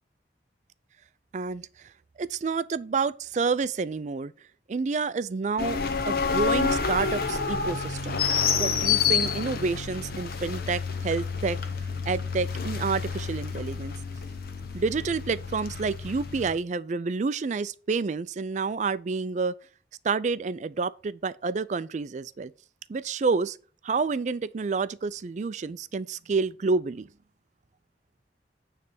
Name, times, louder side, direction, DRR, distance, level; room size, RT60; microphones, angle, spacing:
voice 1, 1.3-1.7 2.2-4.3 4.7-8.2 8.6-11.6 12.1-13.9 14.7-19.5 20.0-22.5 22.9-23.6 23.8-27.1, right 4 dB, 40° right, 0.4 m, -29 dB
sound 1, 5.6-16.5, left 5 dB, 55° left, 0.9 m, -29 dB
9.5 x 3.3 x 6.8 m
head